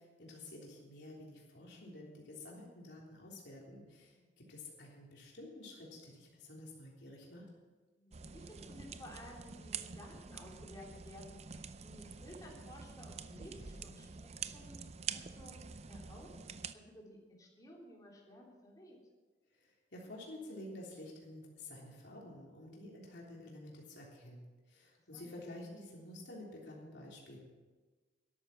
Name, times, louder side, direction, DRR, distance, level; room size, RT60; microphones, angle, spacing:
voice 1, 0.0-7.5 19.5-27.4, left 1 dB, 75° left, -3 dB, 3.5 m, -50 dB
voice 2, 7.9-16.4 16.7-19.0 25.1-25.4, left 1 dB, 20° left, -2 dB, 3.4 m, -55 dB
sound 1, 8.1-16.7, right 6 dB, 35° right, 0.6 m, -47 dB
13.0 x 11.5 x 6.1 m, 1.3 s
head